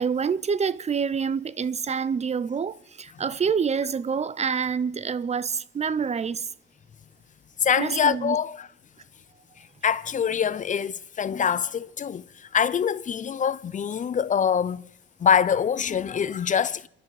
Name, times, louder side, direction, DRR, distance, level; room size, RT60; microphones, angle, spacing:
voice 1, 0.0-6.5 7.8-8.4, right 6 dB, 35° right, 0.5 m, -27 dB
voice 2, 7.6-8.7 9.6-14.8 15.2-16.9, left 7 dB, 40° left, 0.5 m, -24 dB
27.0 x 11.0 x 4.8 m
cardioid pair, 90°, 20 cm